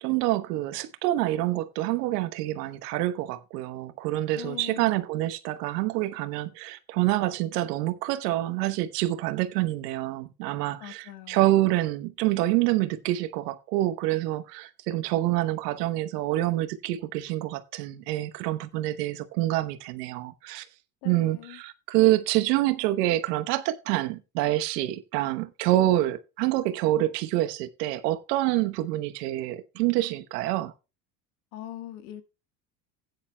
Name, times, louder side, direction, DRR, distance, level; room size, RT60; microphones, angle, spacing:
voice 1, 0.0-20.6 21.0-30.7, right 15 dB, 80° right, 1.1 m, -27 dB
voice 2, 4.3-5.0 10.8-11.6 21.0-21.6 31.5-32.2, left 13 dB, 65° left, 1.5 m, -42 dB
15.5 x 9.7 x 2.2 m
supercardioid pair, 90°, 48 cm